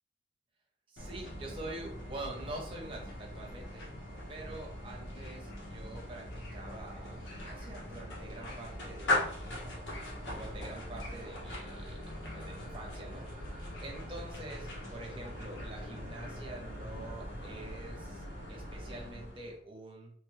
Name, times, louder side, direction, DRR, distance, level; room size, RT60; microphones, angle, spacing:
voice 1, 0.9-3.9 4.3-6.2 6.5-9.5 10.3-13.3 13.8-18.2 18.5-20.1, right 2 dB, 30° right, -1 dB, 0.8 m, -46 dB
sound 1, 1.0-19.6, left 1 dB, 85° left, 1.1 m, -40 dB
3.3 x 2.2 x 3.2 m, 0.62 s
head